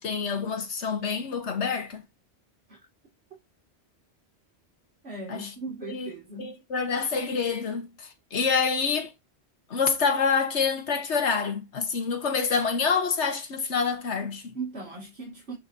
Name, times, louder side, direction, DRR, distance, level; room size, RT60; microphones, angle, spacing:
voice 1, 0.0-2.0 5.3-5.5 5.8-6.1 6.4-9.1 9.7-14.5, left 5 dB, 85° left, 1.5 m, -27 dB
voice 2, 5.0-6.5 14.5-15.5, right 3 dB, 65° right, 2.7 m, -38 dB
12.0 x 4.5 x 2.7 m
omnidirectional pair, 1.2 m